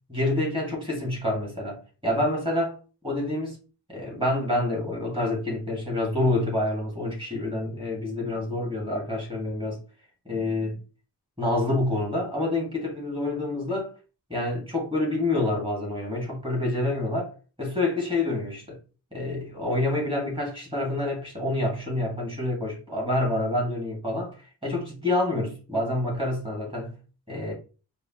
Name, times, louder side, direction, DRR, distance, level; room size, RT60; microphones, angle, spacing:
voice 1, 0.1-2.8 3.0-3.6 3.9-9.8 10.3-10.8 11.4-13.9 14.3-17.3 17.6-18.8 19.1-24.4 24.6-27.0 27.3-27.5, left 1 dB, 15° right, 1.9 m, -27 dB
4.9 x 2.4 x 2.9 m
wide cardioid pair, 105°, 41 cm